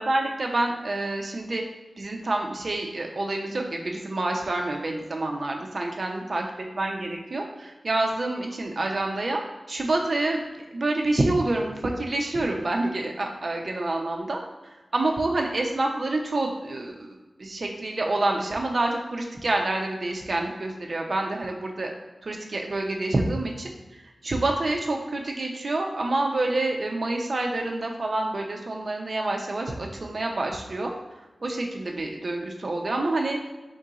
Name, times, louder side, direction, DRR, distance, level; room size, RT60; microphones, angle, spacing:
voice 1, 0.0-1.6 2.0-6.4 6.7-9.4 9.7-10.4 10.7-14.4 14.9-21.9 22.2-23.7 24.2-30.9 31.4-33.4, right 2 dB, 55° right, 1 dB, 0.6 m, -27 dB
3.7 x 2.7 x 4.7 m, 1.2 s
wide cardioid pair, 100°, 0 cm